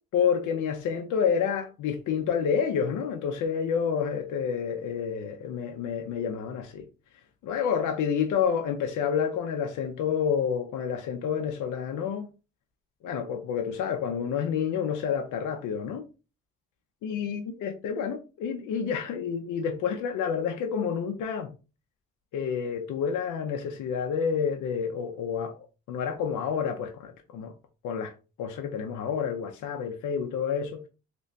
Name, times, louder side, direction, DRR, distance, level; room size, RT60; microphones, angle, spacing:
voice 1, 0.1-6.9 7.4-12.3 13.0-16.0 17.0-21.5 22.3-27.5 27.8-28.1 28.4-30.8, left 7 dB, 85° left, 0.6 m, -29 dB
3.0 x 2.6 x 3.2 m
cardioid pair, 90°, 30 cm